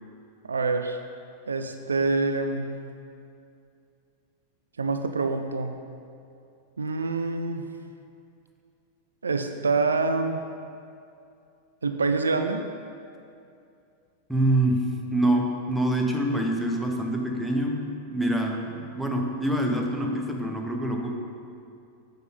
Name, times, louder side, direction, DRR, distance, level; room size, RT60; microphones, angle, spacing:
voice 1, 0.4-1.0 1.5-2.8 4.8-5.8 6.8-7.7 9.2-10.4 11.8-12.6, right 3 dB, 75° right, 7 dB, 0.3 m, -26 dB
voice 2, 14.3-21.1, right 1 dB, ahead, 0 dB, 0.7 m, -26 dB
6.5 x 5.2 x 4.1 m, 2.5 s
figure-of-eight pair, 90°, 0 cm